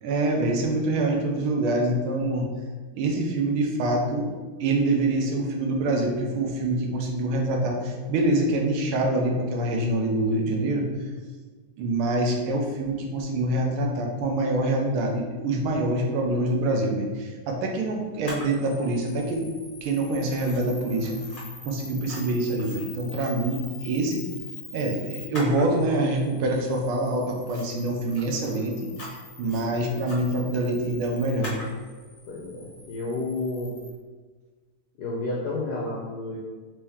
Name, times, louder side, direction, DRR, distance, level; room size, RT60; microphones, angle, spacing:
voice 1, 0.0-2.5 2.9-4.3 4.6-10.9 11.8-19.4 19.8-21.2 21.6-24.2 24.7-28.7 29.4-31.5, right 2 dB, 80° right, 1 dB, 1.6 m, -25 dB
Camera, 18.2-33.9, left 1 dB, 45° left, 0.6 m, -43 dB
voice 2, 32.3-33.7 35.0-36.4, left 2 dB, 70° left, -3 dB, 0.9 m, -31 dB
4.4 x 3.1 x 3.5 m, 1.4 s
omnidirectional pair, 2.3 m